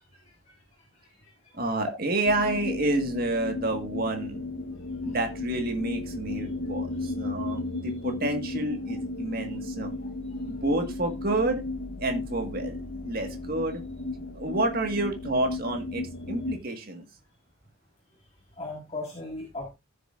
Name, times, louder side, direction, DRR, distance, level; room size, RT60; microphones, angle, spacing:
voice 1, 1.5-4.4 5.0-9.9 10.5-11.6 12.0-13.8 14.3-17.0, right 2 dB, 40° right, 5 dB, 1.7 m, -29 dB
sound 1, 2.2-16.6, left 2 dB, 75° left, 1.2 m, -34 dB
voice 2, 18.6-19.7, left 2 dB, 30° left, -2 dB, 1.9 m, -38 dB
14.5 x 6.9 x 2.5 m, 0.25 s
head